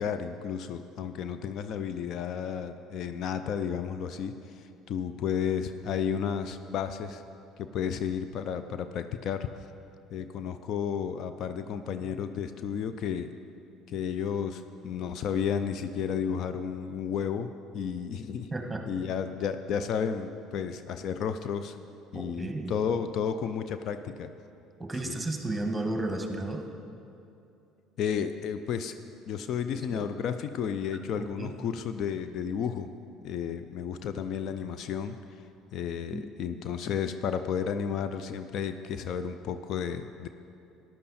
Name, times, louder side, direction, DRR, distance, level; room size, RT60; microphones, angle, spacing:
voice 1, 0.0-7.2 7.6-9.5 10.1-13.3 13.9-18.5 18.9-21.8 22.1-24.3 25.0-25.2 28.0-28.9 29.3-32.9 33.2-35.2 35.7-40.3, left 7 dB, 60° left, 10 dB, 0.5 m, -32 dB
voice 2, 18.5-18.8 22.1-22.7 24.8-26.6 29.7-30.0 31.4-31.5 36.1-36.2, right 2 dB, 10° right, 3 dB, 1.7 m, -33 dB
13.5 x 10.5 x 4.2 m, 2.7 s
hypercardioid pair, 65°, 0 cm